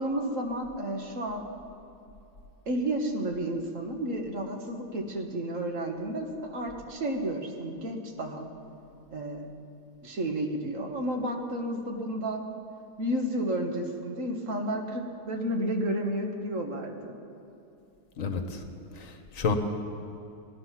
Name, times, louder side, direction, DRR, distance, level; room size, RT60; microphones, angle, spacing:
voice 1, 0.0-1.5 2.7-8.5 9.1-9.5 10.0-12.4 13.0-17.1, right 1 dB, 60° right, 3 dB, 1.7 m, -31 dB
voice 2, 18.2-18.6 19.0-19.6, left 5 dB, 60° left, 6 dB, 1.5 m, -30 dB
18.5 x 11.0 x 5.8 m, 2.7 s
omnidirectional pair, 1.6 m